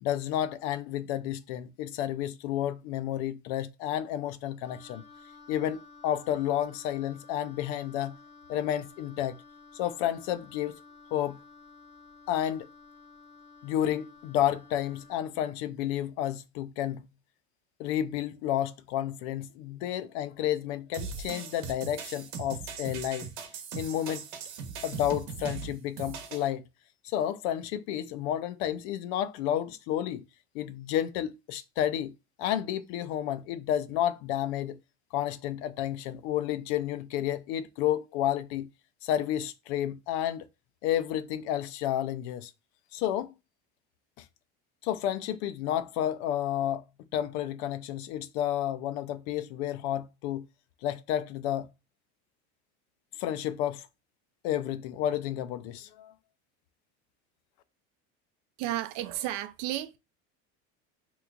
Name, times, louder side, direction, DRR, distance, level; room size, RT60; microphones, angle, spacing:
voice 1, 0.0-5.0 5.5-8.2 8.5-9.4 9.7-10.8 11.1-11.4 12.3-12.7 13.6-17.1 17.8-23.3 23.7-24.3 24.8-26.6 27.0-30.2 30.5-34.8 35.1-38.7 39.0-40.5 40.8-42.5 42.9-43.3 44.2-44.3 44.8-46.8 47.1-50.5 50.8-51.7 53.2-53.9 54.4-56.1, left 11 dB, 75° left, 0.5 m, -31 dB
Wind instrument woodwind instrument, 4.6-15.3, left 4 dB, 35° left, 0.6 m, -53 dB
sound 1, 20.9-26.5, right 6 dB, 90° right, 0.9 m, -39 dB
voice 2, 58.6-60.0, right 14 dB, 60° right, 0.5 m, -32 dB
3.0 x 2.3 x 3.7 m
cardioid pair, 140°, 33 cm